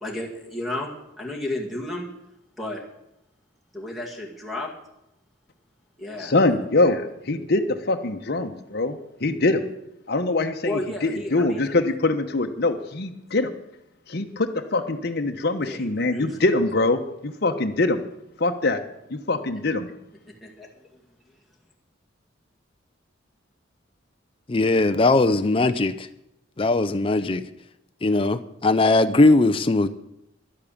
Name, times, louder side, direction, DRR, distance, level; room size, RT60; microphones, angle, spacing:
voice 1, 0.0-0.9 1.2-2.1 2.6-2.8 3.7-4.7 6.0-6.3 10.6-11.7 15.6-16.5 20.4-20.7, left 1 dB, ahead, 0 dB, 2.1 m, -32 dB
voice 2, 6.2-9.6 10.1-13.5 14.1-18.0 18.4-18.8 19.1-19.9, left 2 dB, 55° left, 5 dB, 1.0 m, -23 dB
voice 3, 24.5-26.1 26.6-27.4 28.0-29.9, left 2 dB, 30° left, 9 dB, 0.5 m, -19 dB
11.5 x 8.7 x 8.6 m, 0.84 s
head